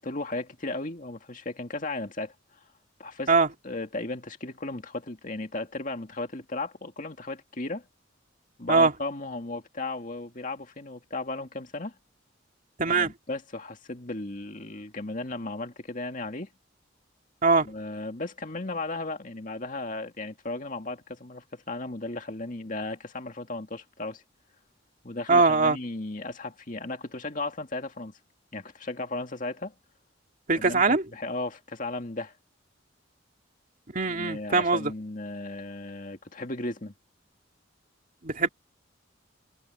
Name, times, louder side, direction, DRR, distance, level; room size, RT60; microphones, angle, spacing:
voice 1, 0.0-2.3 3.0-3.3 3.6-7.9 8.6-12.0 12.9-16.5 17.7-24.2 25.0-28.1 28.5-29.7 30.6-32.3 34.1-36.9, left 2 dB, 40° left, 2.2 m, -35 dB
voice 2, 12.8-13.1 17.4-17.7 25.3-25.8 30.5-31.1 33.9-34.9 38.2-38.5, right 4 dB, 45° right, 2.5 m, -21 dB
head